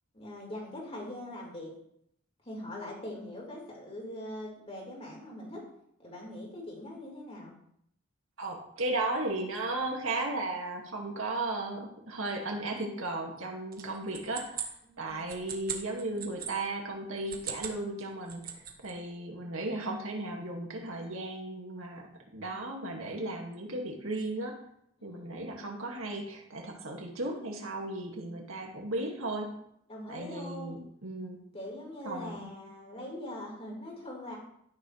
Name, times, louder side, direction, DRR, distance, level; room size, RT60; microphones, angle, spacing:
voice 1, 0.1-1.7 2.4-5.6 6.0-7.5 14.9-15.3 25.0-25.3 29.9-30.8 31.5-34.4, left 1 dB, 30° left, -3 dB, 4.5 m, -42 dB
voice 2, 8.4-22.1 22.3-24.6 25.0-29.5 30.1-31.4 32.0-32.5, right 2 dB, 70° right, 1 dB, 2.3 m, -35 dB
sound 1, 13.7-16.5 17.2-17.8 18.1-18.9, right 8 dB, 45° right, 1.6 m, -39 dB
13.0 x 11.0 x 3.4 m, 0.72 s
head